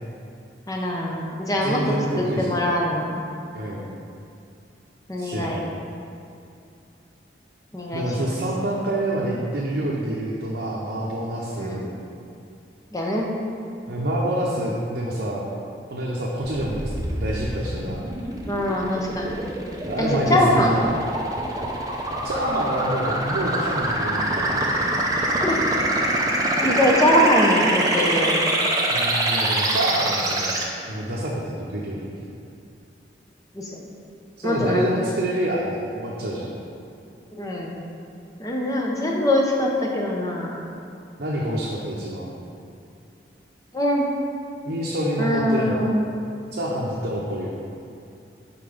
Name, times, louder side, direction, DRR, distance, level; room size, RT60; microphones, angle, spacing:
voice 1, 0.7-1.8 2.1-3.2 5.1-5.6 7.7-8.4 11.4-11.9 12.9-13.3 18.5-19.4 20.0-20.9 25.4-25.5 26.5-28.3 33.5-33.8 34.4-34.8 37.3-37.8 38.4-40.6 43.7-44.0 45.2-46.0, left 1 dB, 20° left, -1 dB, 0.7 m, -23 dB
voice 2, 1.6-2.7 3.5-3.9 5.2-5.7 7.9-11.9 13.9-15.5 15.9-16.8 17.1-18.1 19.9-20.8 22.2-24.5 28.9-30.6 30.9-32.1 34.4-36.5 41.2-42.3 44.6-45.9 46.5-47.5, right 1 dB, 70° right, -5 dB, 0.8 m, -27 dB
sound 1, 16.4-30.6, right 1 dB, 20° right, 0.6 m, -25 dB
5.7 x 4.6 x 5.1 m, 2.6 s
head